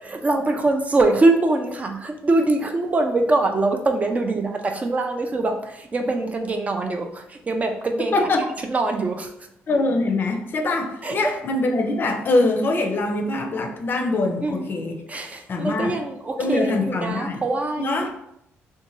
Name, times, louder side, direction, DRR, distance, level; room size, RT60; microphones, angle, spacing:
voice 1, 0.0-8.2 8.7-9.3 11.0-11.4 14.4-14.7 15.1-18.1, right 2 dB, 30° right, 4 dB, 0.4 m, -23 dB
voice 2, 9.7-15.0 15.5-15.9 16.4-17.4 17.8-18.1, left 2 dB, 45° left, 4 dB, 0.5 m, -23 dB
2.5 x 2.2 x 3.0 m, 0.77 s
cardioid pair, 85°, 5 cm